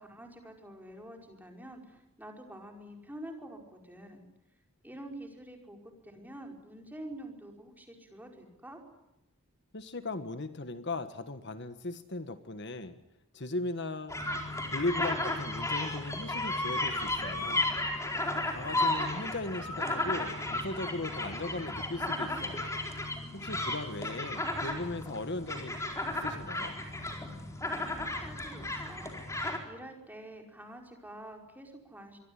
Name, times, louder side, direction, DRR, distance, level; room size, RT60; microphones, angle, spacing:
voice 1, 0.0-4.2 4.8-8.8 27.6-32.2, right 1 dB, 10° right, 2 dB, 5.0 m, -47 dB
voice 2, 9.7-13.0 13.3-14.2 14.7-17.7 18.5-22.7 23.3-25.8 26.1-26.7, left 2 dB, 50° left, 9 dB, 1.5 m, -37 dB
sound 1, 14.1-29.6, left 2 dB, 15° left, 4.4 m, -34 dB
26.0 x 23.0 x 9.9 m, 0.92 s
head